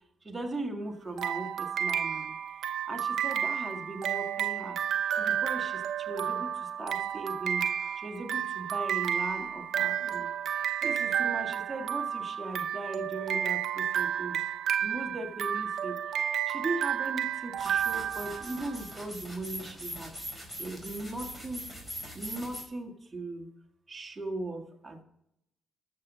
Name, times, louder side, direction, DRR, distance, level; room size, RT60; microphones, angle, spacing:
voice 1, 0.2-2.4 2.9-4.8 5.1-7.7 8.0-10.3 10.8-14.4 14.8-16.0 16.5-20.1 20.6-21.7 22.1-23.5 23.9-25.0, right 2 dB, 20° right, 2 dB, 1.9 m, -38 dB
sound 1, 1.2-18.8, right 9 dB, 70° right, 0.6 m, -31 dB
sound 2, 17.6-22.6, equal, 10° left, 4.7 m, -42 dB
12.5 x 6.9 x 5.1 m, 0.78 s
cardioid pair, 90°, 0 cm